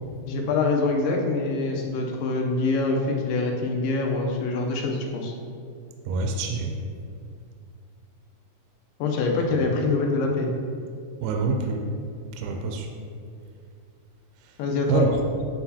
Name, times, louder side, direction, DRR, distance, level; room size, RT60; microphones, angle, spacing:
voice 1, 0.3-5.3 9.0-10.6 14.6-15.0, left 3 dB, 80° left, 1 dB, 2.2 m, -25 dB
voice 2, 6.1-6.7 11.2-11.8 12.4-12.9 14.9-15.2, right 4 dB, 80° right, 3 dB, 2.1 m, -26 dB
8.8 x 4.1 x 2.8 m, 2.3 s
omnidirectional pair, 4.1 m